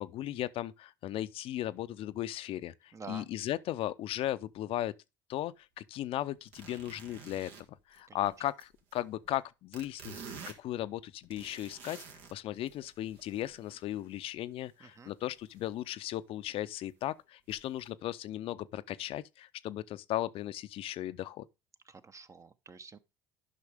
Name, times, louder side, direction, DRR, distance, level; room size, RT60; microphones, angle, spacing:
voice 1, 0.0-4.9 5.3-12.0 12.3-21.5, left 13 dB, 55° left, 0.6 m, -37 dB
voice 2, 2.9-3.3 8.1-8.3 14.8-15.1 21.9-23.0, right 5 dB, 30° right, 0.9 m, -48 dB
sound 1, 6.4-9.4 9.7-12.3 12.7-14.0 15.4-15.7 16.0-16.1 16.7-16.8 17.5-17.9, right 5 dB, 70° right, 1.8 m, -50 dB
11.0 x 5.7 x 3.5 m
hypercardioid pair, 65°, 11 cm